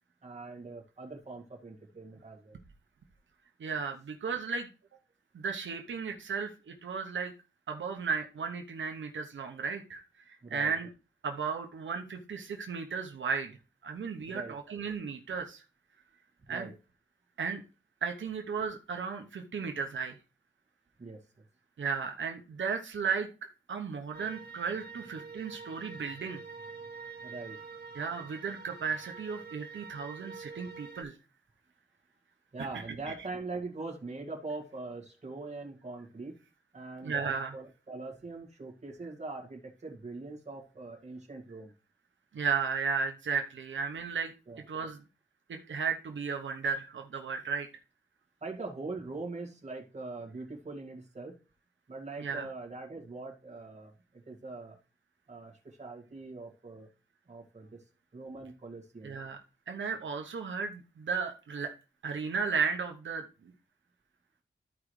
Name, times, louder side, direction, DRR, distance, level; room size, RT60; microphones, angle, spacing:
voice 1, 0.2-2.6 10.4-10.7 14.3-14.6 16.5-16.7 21.0-21.2 27.2-27.6 32.5-36.4 36.7-41.7 44.5-44.6 48.4-51.4 51.9-54.8 55.3-56.9 57.3-57.8 58.1-59.1, right 3 dB, 35° right, 1 dB, 2.0 m, -42 dB
voice 2, 3.6-4.7 5.3-7.3 7.7-10.9 11.2-13.5 13.8-15.6 16.5-16.7 17.4-17.6 18.0-20.1 21.8-23.3 23.7-26.4 27.9-31.1 33.1-33.2 37.0-37.5 42.3-44.3 44.7-45.0 45.5-47.7 52.2-52.5 59.0-59.4 59.7-61.7 62.0-63.2, right 5 dB, 80° right, 3 dB, 0.9 m, -34 dB
sound 1, 24.1-31.0, right 5 dB, 60° right, 1.8 m, -46 dB
14.0 x 4.9 x 3.2 m, 0.32 s
wide cardioid pair, 170°, 19 cm